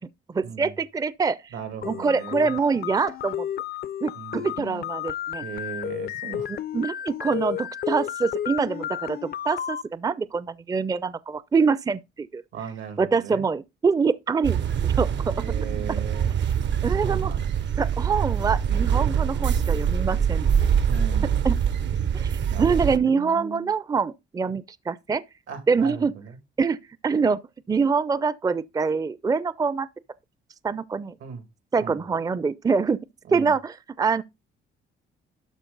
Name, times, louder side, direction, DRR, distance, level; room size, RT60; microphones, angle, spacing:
voice 1, 0.3-1.4 1.8-3.5 4.0-5.4 6.5-12.4 13.0-15.3 16.8-17.3 17.8-20.5 21.4-21.6 22.1-25.2 25.7-26.1 26.6-26.8 27.0-27.4 27.7-29.9 30.6-31.2 31.7-33.0 33.3-34.2, right 5 dB, 20° right, 0.4 m, -25 dB
voice 2, 1.5-2.5 4.2-4.5 5.4-6.5 12.5-13.4 15.4-16.4 17.0-17.5 20.9-21.6 22.5-23.7 25.5-26.4 31.2-31.4 31.8-32.0 33.3-33.5, right 6 dB, 85° right, 2.3 m, -37 dB
sound 1, 1.8-9.8, left 10 dB, 50° left, 0.5 m, -32 dB
sound 2, 14.4-23.0, right 8 dB, 65° right, 0.9 m, -24 dB
12.5 x 4.4 x 3.9 m
cardioid pair, 90°, 20 cm